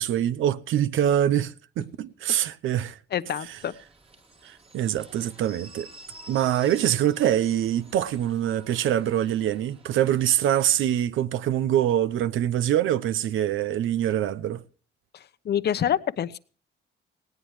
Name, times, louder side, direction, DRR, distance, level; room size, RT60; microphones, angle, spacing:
voice 1, 0.0-3.0 4.4-5.9 6.3-14.6, right 11 dB, 85° right, 0.8 m, -24 dB
voice 2, 3.1-3.7 15.1-16.4, left 9 dB, 55° left, 0.9 m, -27 dB
sound 1, 3.4-10.3, right 3 dB, 30° right, 2.1 m, -49 dB
19.0 x 17.5 x 3.2 m
cardioid pair, 120°, 20 cm